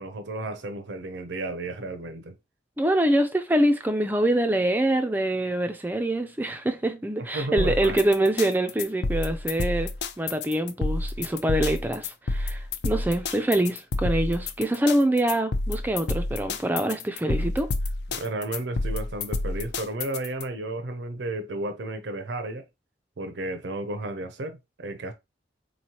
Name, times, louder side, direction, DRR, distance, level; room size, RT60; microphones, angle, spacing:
voice 1, 0.0-2.4 7.2-8.0 18.1-22.6 23.2-25.1, right 2 dB, 75° right, 0.6 m, -33 dB
voice 2, 2.8-17.7, right 1 dB, 10° right, 0.3 m, -25 dB
sound 1, 7.6-20.4, left 2 dB, 65° left, 0.4 m, -29 dB
4.0 x 3.0 x 2.8 m
head